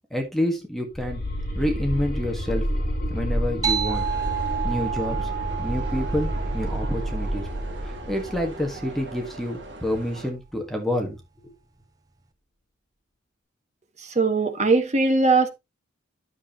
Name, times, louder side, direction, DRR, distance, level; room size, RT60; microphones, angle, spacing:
voice 1, 0.1-1.2 1.5-2.7 3.1-4.1 4.6-5.3 5.6-7.5 8.1-11.2 11.4-11.5, left 1 dB, ahead, 1.7 m, -28 dB
sound 1, 0.9-9.8, equal, 50° left, 4.4 m, -29 dB
sound 2, 3.6-8.6, right 8 dB, 20° right, 1.0 m, -31 dB
sound 3, 3.8-10.3, right 3 dB, 65° right, 2.5 m, -41 dB
voice 2, 14.1-15.5, right 3 dB, 40° right, 1.7 m, -20 dB
9.7 x 7.3 x 3.0 m
head